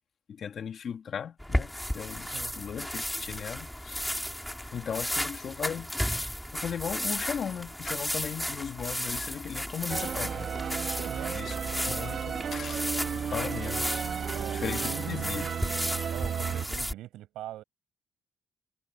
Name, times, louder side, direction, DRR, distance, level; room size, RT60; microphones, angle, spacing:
voice 1, 0.3-4.0 4.7-5.9 6.5-10.5 11.3-11.5 11.9-14.1 14.5-15.4, left 8 dB, 55° left, 2.2 m, -37 dB
sound 1, 1.4-16.9, equal, 5° left, 4.5 m, -34 dB
sound 2, 9.9-16.7, right 7 dB, 55° right, 1.6 m, -33 dB
voice 2, 11.0-11.4 14.3-15.5 16.1-17.6, right 14 dB, 90° right, 7.6 m, -42 dB
cardioid pair, 90°, 0 cm